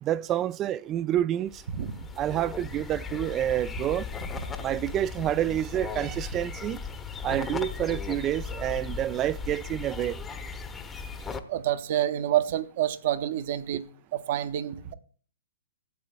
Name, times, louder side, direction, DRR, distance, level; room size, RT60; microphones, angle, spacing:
voice 1, 0.0-1.6 2.2-4.1 4.6-6.8 7.2-10.2, right 12 dB, 25° right, 0.3 m, -28 dB
sound 1, 1.5-11.4, left 5 dB, 15° left, 0.9 m, -37 dB
voice 2, 1.7-2.1 11.5-13.9 14.1-14.9, right 11 dB, 45° right, 0.8 m, -28 dB
16.5 x 8.2 x 2.3 m
figure-of-eight pair, 120°, 0 cm